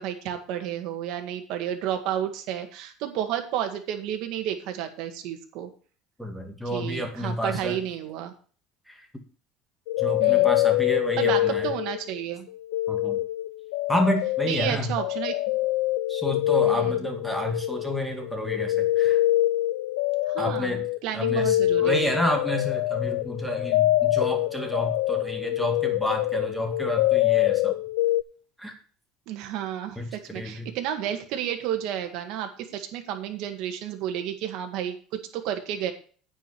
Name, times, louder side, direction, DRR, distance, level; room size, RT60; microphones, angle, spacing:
voice 1, 0.0-5.7 6.7-8.3 10.2-10.5 11.2-12.5 14.5-15.3 16.7-16.9 20.3-22.2 29.3-35.0 35.3-35.9, right 10 dB, 65° right, 5 dB, 1.8 m, -31 dB
voice 2, 6.2-7.8 8.9-9.1 10.0-11.7 12.9-13.2 13.9-15.0 16.1-19.2 20.4-20.9 21.1-27.8 28.6-28.7 30.0-30.7, equal, ahead, 3 dB, 2.2 m, -30 dB
sound 1, 9.9-12.2 12.5-28.2, left 16 dB, 85° left, 0.4 m, -25 dB
9.2 x 5.0 x 7.9 m, 0.42 s
cardioid pair, 125°, 0 cm